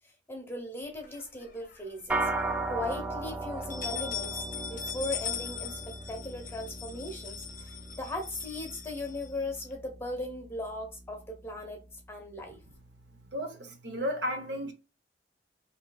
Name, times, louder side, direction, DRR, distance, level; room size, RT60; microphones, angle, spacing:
voice 1, 0.3-2.3 2.7-11.8 12.1-12.6, left 2 dB, 15° left, 0.9 m, -38 dB
sound 1, 1.0-2.0 2.4-2.5 2.8-2.9 3.5-9.7, left 7 dB, 45° left, 0.6 m, -40 dB
sound 2, 2.1-11.6, right 2 dB, 10° right, 0.3 m, -37 dB
voice 2, 13.3-14.7, equal, 70° right, 0.9 m, -33 dB
4.5 x 2.8 x 2.3 m
head